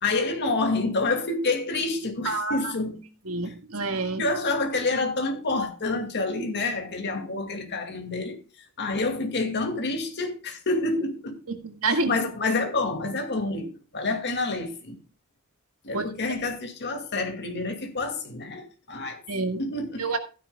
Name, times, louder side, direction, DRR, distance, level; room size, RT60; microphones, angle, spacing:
voice 1, 0.0-3.0 4.2-8.4 8.8-11.4 11.9-15.0 15.8-19.2 19.6-20.0, left 3 dB, 50° left, 2.3 m, -28 dB
voice 2, 2.3-2.7 3.3-4.3 11.5-12.1 15.9-16.1 19.3-19.6 20.0-20.2, right 3 dB, 70° right, 1.8 m, -28 dB
15.5 x 10.0 x 2.3 m
head